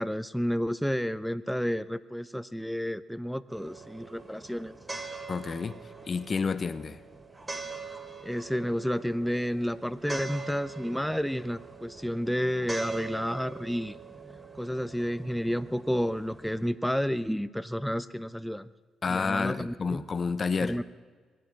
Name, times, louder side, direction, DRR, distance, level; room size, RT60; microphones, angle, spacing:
voice 1, 0.0-4.7 8.2-14.0 14.5-18.7 19.1-20.0 20.6-20.8, equal, ahead, 0.6 m, -31 dB
sound 1, 3.5-16.7, right 4 dB, 25° right, 3.2 m, -43 dB
voice 2, 5.3-7.0 19.0-20.8, left 5 dB, 45° left, 0.9 m, -30 dB
23.0 x 9.4 x 6.0 m
hypercardioid pair, 50°, 0 cm